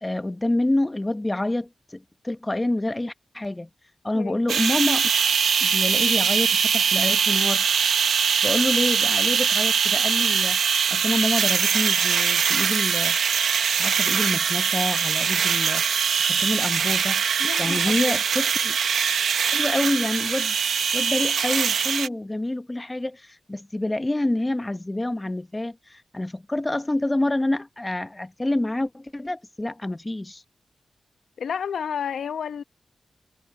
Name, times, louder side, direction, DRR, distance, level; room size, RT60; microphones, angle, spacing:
voice 1, 0.0-3.7 4.0-5.3 5.6-7.8 8.4-13.2 13.7-17.3 17.6-18.8 19.5-20.6 20.9-30.4, left 1 dB, 20° left, 0.9 m, -27 dB
voice 2, 4.1-4.5 17.4-18.2 31.4-32.6, left 7 dB, 90° left, 0.9 m, -31 dB
sound 1, 4.5-22.1, right 7 dB, 90° right, 1.0 m, -22 dB
wide cardioid pair, 90°, 0 cm